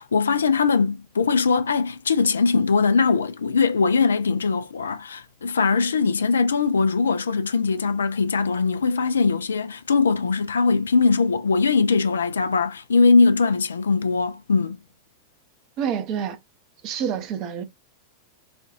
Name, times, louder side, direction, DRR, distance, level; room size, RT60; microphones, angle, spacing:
voice 1, 0.0-14.8, left 4 dB, 70° left, 0.4 m, -21 dB
voice 2, 15.8-16.4 16.8-17.6, right 8 dB, 40° right, 0.7 m, -27 dB
4.3 x 2.3 x 2.3 m
figure-of-eight pair, 90°, 0 cm